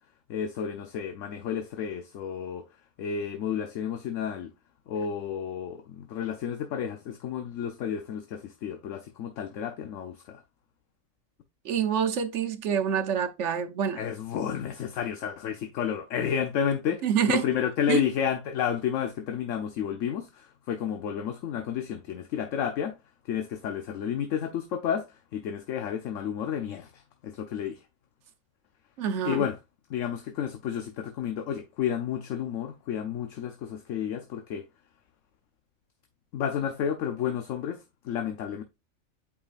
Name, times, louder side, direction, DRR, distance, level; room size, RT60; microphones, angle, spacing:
voice 1, 0.3-2.6 3.0-4.5 4.9-10.4 14.0-23.0 23.2-27.8 29.2-29.6 29.9-34.6 36.3-38.6, left 8 dB, 70° left, 1.0 m, -31 dB
voice 2, 11.6-14.0 17.0-17.4 17.9-18.0 29.0-29.5, right 8 dB, 60° right, 1.0 m, -27 dB
8.5 x 4.9 x 2.4 m
omnidirectional pair, 1.4 m